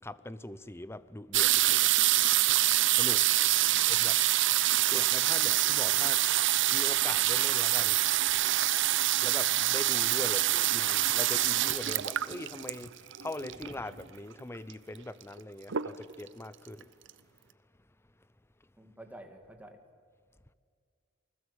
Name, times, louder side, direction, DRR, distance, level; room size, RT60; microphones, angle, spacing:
voice 1, 0.0-1.9 3.0-3.2 3.9-4.1 4.9-8.0 9.2-16.9, left 1 dB, 10° left, 0.6 m, -41 dB
sound 1, 1.3-13.9 14.7-14.8 15.0-15.4 15.7-16.3 16.8-16.9 17.1-17.2, right 14 dB, 60° right, 0.7 m, -26 dB
voice 2, 3.6-4.3 18.8-19.8, right 1 dB, 5° right, 2.2 m, -51 dB
28.0 x 20.5 x 8.4 m
head